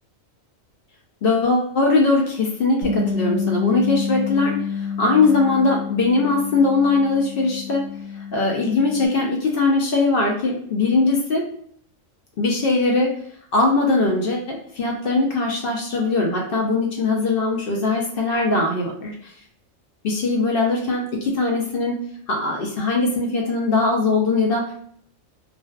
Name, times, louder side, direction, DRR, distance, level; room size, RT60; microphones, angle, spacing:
voice 1, 1.2-7.8 8.2-11.5 12.4-13.1 13.5-19.3 20.0-22.0 22.3-24.7, left 3 dB, 65° left, 0 dB, 0.5 m, -20 dB
Bass guitar, 2.8-9.1, left 6 dB, 70° right, 0.9 m, -28 dB
2.5 x 2.2 x 2.2 m, 0.62 s
omnidirectional pair, 1.4 m